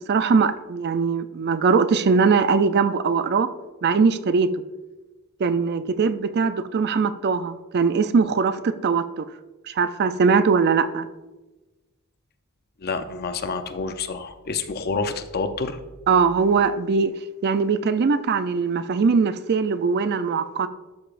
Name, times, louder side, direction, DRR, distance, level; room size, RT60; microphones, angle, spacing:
voice 1, 0.1-3.5 3.8-4.6 5.4-9.3 9.7-11.1 16.1-17.1 17.4-20.7, right 5 dB, 50° right, 0.4 m, -21 dB
voice 2, 12.8-15.8, left 4 dB, 45° left, 0.6 m, -28 dB
12.5 x 6.8 x 2.5 m
head